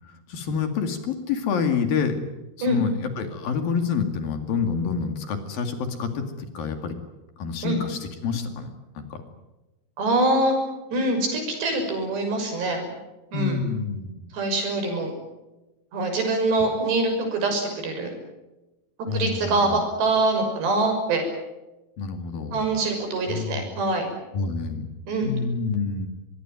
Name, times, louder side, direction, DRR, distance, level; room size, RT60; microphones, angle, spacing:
voice 1, 0.0-2.2 2.6-7.0 7.4-9.2 13.3-14.3 19.1-19.8 22.0-22.7 23.3-23.8 24.3-24.9 25.2-26.1, left 5 dB, 60° left, 7 dB, 3.9 m, -28 dB
voice 2, 10.0-10.6 10.9-12.8 13.3-13.6 14.3-15.1 15.9-18.1 19.1-21.2 22.5-24.1 25.1-25.3, right 2 dB, 75° right, 5 dB, 8.4 m, -24 dB
24.5 x 21.0 x 9.3 m, 1.0 s
omnidirectional pair, 4.9 m